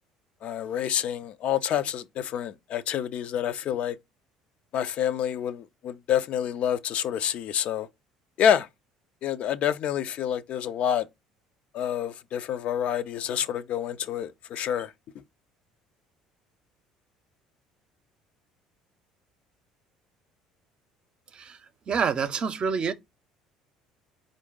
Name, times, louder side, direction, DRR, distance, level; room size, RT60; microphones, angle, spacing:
voice 1, 0.4-4.0 4.7-7.9 8.4-8.7 9.2-11.1 11.7-14.9, left 9 dB, 55° left, 0.5 m, -28 dB
voice 2, 21.9-22.9, right 6 dB, 45° right, 0.6 m, -27 dB
4.4 x 2.6 x 3.5 m
hypercardioid pair, 65°, 2 cm